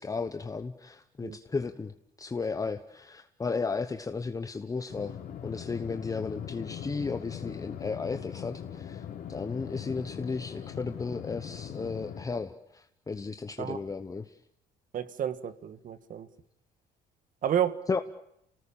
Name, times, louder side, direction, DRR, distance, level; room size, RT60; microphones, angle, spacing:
voice 1, 0.0-5.2 5.4-14.4 17.9-18.0, left 4 dB, 20° left, 9 dB, 1.0 m, -34 dB
sound 1, 4.9-12.2, left 9 dB, 60° left, 4.2 m, -40 dB
voice 2, 14.9-16.3 17.4-17.8, right 9 dB, 50° right, 12 dB, 1.7 m, -30 dB
28.5 x 19.0 x 8.8 m, 0.79 s
cardioid pair, 110°, 17 cm